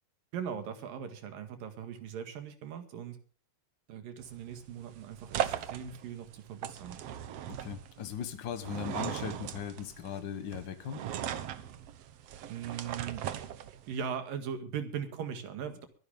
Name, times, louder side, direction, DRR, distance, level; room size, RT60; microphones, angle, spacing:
voice 1, 0.3-3.2 3.9-7.0 12.5-13.3 13.9-15.9, right 7 dB, 80° right, 8 dB, 3.6 m, -39 dB
sound 1, 4.2-14.1, right 10 dB, 65° right, 1.7 m, -39 dB
voice 2, 7.5-11.0, left 8 dB, 70° left, 10 dB, 1.0 m, -38 dB
22.5 x 11.0 x 3.6 m, 0.40 s
omnidirectional pair, 3.9 m